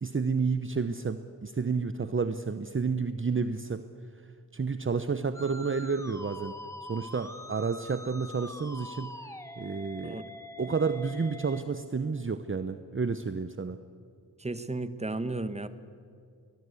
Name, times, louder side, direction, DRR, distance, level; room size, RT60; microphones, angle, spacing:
voice 1, 0.0-3.8 4.5-6.6 6.8-9.1 9.6-10.2 10.6-13.8, right 5 dB, 35° right, 11 dB, 0.8 m, -30 dB
Musical instrument, 5.3-11.6, left 1 dB, 10° left, 2.0 m, -44 dB
voice 2, 14.4-15.7, right 2 dB, 20° right, 12 dB, 1.3 m, -34 dB
22.0 x 20.5 x 8.3 m, 2.4 s
wide cardioid pair, 85°, 37 cm